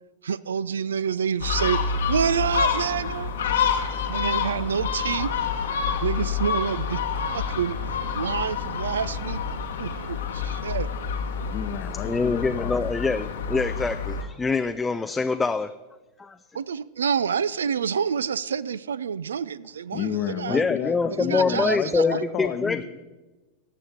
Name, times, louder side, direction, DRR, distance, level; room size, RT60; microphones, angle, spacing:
voice 1, 0.2-3.3 4.1-5.3 6.0-7.0 7.3-7.8 8.1-9.4 9.8-10.9 16.5-20.7 21.1-22.2, right 7 dB, 65° right, 19 dB, 0.3 m, -27 dB
Gull seagull, 1.4-14.2, left 6 dB, 65° left, 1.0 m, -28 dB
voice 2, 11.4-12.8 19.9-22.8, left 10 dB, 35° left, 11 dB, 0.8 m, -31 dB
voice 3, 12.0-15.7 16.2-16.4 20.5-22.8, left 4 dB, 10° left, 9 dB, 0.3 m, -25 dB
18.0 x 7.1 x 4.4 m, 1.2 s
figure-of-eight pair, 90°, 0 cm